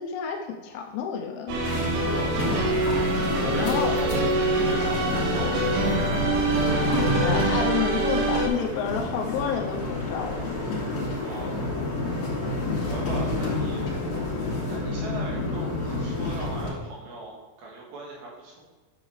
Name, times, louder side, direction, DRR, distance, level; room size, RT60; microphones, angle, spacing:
voice 1, 0.0-1.6 3.4-4.0 7.2-10.5, left 7 dB, 80° left, 2 dB, 2.9 m, -30 dB
sound 1, 1.5-8.5, right 2 dB, 90° right, 3.7 m, -25 dB
sound 2, 1.6-16.7, left 2 dB, 55° left, 1.8 m, -29 dB
voice 2, 2.0-2.7 3.5-4.1 4.6-6.2 11.2-11.6 12.9-13.8 14.7-18.6, right 2 dB, 65° right, -3 dB, 2.7 m, -39 dB
9.6 x 7.1 x 3.2 m, 1.3 s
omnidirectional pair, 5.8 m